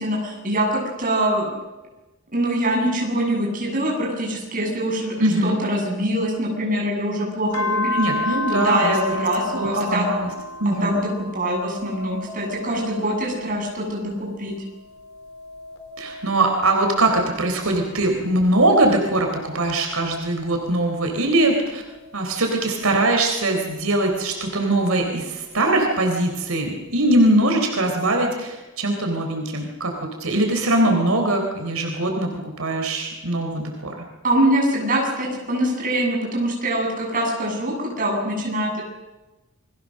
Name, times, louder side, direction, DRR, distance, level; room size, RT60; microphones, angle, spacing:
voice 1, 0.0-1.5 2.3-5.2 5.4-8.1 8.5-10.1 10.6-14.5 34.2-38.8, right 1 dB, 40° right, 0 dB, 7.7 m, -23 dB
voice 2, 5.2-5.6 8.0-9.3 9.5-10.3 10.6-10.9 16.0-21.8 22.1-34.1, right 1 dB, 90° right, 2 dB, 3.8 m, -21 dB
sound 1, 7.5-14.3 14.7-17.6 18.2-21.0 21.7-24.2 25.5-26.6, left 1 dB, 80° left, 3.3 m, -33 dB
28.5 x 22.0 x 6.6 m, 1.1 s
head